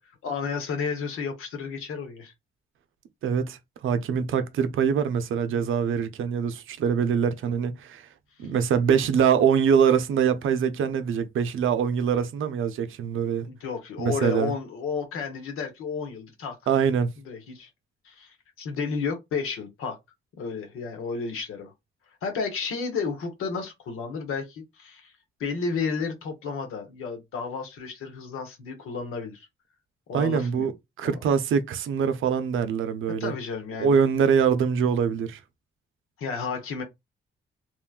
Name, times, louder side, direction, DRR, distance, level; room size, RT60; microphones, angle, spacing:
voice 1, 0.2-2.3 5.5-5.7 8.4-8.5 13.4-16.6 17.3-17.7 18.0-20.0 20.4-21.7 22.2-25.1 25.4-29.5 30.1-30.7 31.0-31.1 33.2-34.0 36.2-36.8, left 5 dB, 85° left, 1.0 m, -32 dB
voice 2, 3.2-8.1 8.4-13.5 14.0-14.5 16.7-17.1 30.1-30.7 31.0-33.3 33.8-35.4, right 7 dB, 70° right, 0.5 m, -24 dB
3.0 x 2.2 x 2.3 m
cardioid pair, 65°, 21 cm